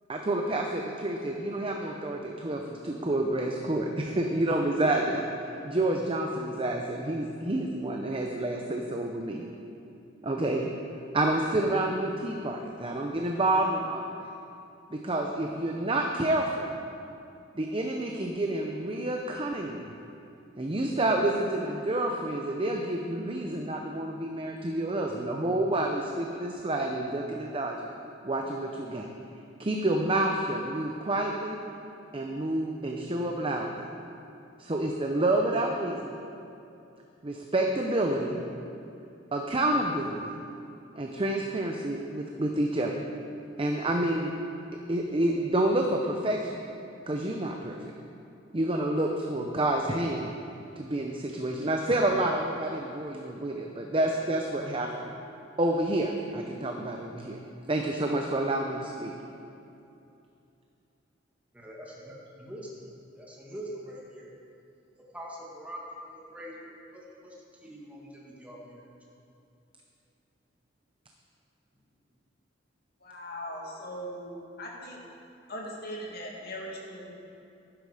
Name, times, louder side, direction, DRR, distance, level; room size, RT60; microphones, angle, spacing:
voice 1, 0.1-9.4 10.2-10.7 11.1-14.3 14.9-16.7 17.5-19.9 20.6-27.9 28.2-29.1 29.6-31.6 32.1-33.8 34.6-36.1 37.2-38.4 39.3-40.3 40.9-42.9 43.6-44.4 44.9-46.6 47.1-47.8 48.5-50.3 50.8-55.0 55.6-57.4 57.7-59.1, right 1 dB, 30° right, 2 dB, 0.7 m, -29 dB
voice 2, 61.6-62.8 63.2-64.3 65.1-67.3 67.6-68.8, equal, 10° right, -4 dB, 1.8 m, -43 dB
voice 3, 73.0-75.0 75.5-77.1, equal, 55° left, -2 dB, 2.2 m, -39 dB
11.5 x 11.0 x 4.9 m, 2.7 s
head